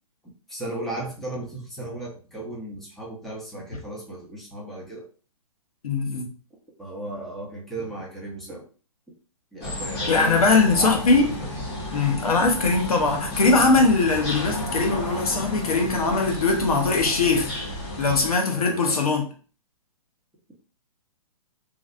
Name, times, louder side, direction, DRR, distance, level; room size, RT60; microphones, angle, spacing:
voice 1, 0.5-5.1 6.8-8.6 9.5-11.5 18.5-19.0, right 1 dB, ahead, 0.7 m, -35 dB
voice 2, 5.8-6.3 10.1-11.2 11.9-17.5 18.0-19.2, left 3 dB, 90° left, 1.0 m, -21 dB
sound 1, 9.6-18.3, left 1 dB, 45° left, 1.4 m, -32 dB
3.1 x 2.7 x 2.5 m
hypercardioid pair, 150°, 18 cm